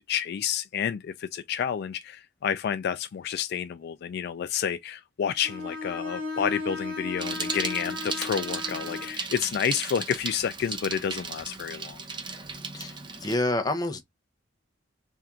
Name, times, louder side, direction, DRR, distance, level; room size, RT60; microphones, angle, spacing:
voice 1, 0.1-12.0, left 8 dB, 55° left, 0.3 m, -30 dB
Bowed string instrument, 5.4-9.2, left 3 dB, 65° right, 1.4 m, -35 dB
Bicycle, 7.2-13.4, right 4 dB, 25° right, 0.7 m, -35 dB
voice 2, 12.7-14.0, left 2 dB, 20° left, 0.7 m, -28 dB
3.6 x 2.5 x 4.2 m
head